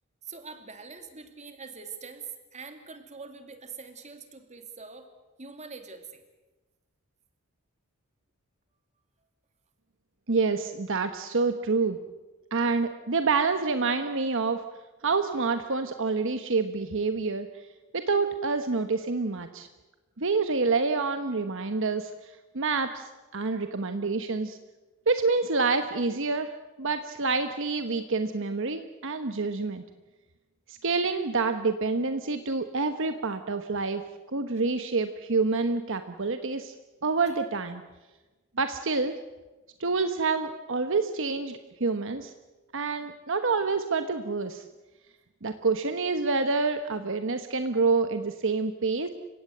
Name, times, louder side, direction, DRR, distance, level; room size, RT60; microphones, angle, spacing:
voice 1, 0.2-5.1 5.4-6.2 37.3-37.4, right 5 dB, 35° right, 7 dB, 2.6 m, -44 dB
voice 2, 10.3-12.0 12.5-14.6 15.0-17.5 17.9-19.7 20.2-24.6 25.1-26.5 26.8-29.8 30.7-34.0 34.3-36.7 37.0-37.8 38.6-39.2 39.8-42.3 42.7-44.6 45.4-49.1, right 4 dB, 65° right, 8 dB, 1.1 m, -27 dB
29.5 x 17.0 x 7.9 m, 1.2 s
head